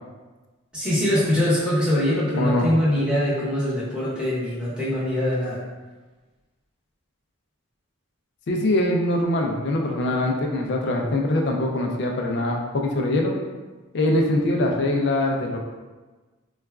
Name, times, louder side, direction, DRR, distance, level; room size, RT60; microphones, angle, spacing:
voice 1, 0.7-5.6, left 1 dB, 5° right, -9 dB, 0.8 m, -23 dB
voice 2, 2.3-2.8 8.5-13.3 13.9-15.7, left 1 dB, 55° left, 1 dB, 0.4 m, -23 dB
3.9 x 2.3 x 2.3 m, 1.3 s
head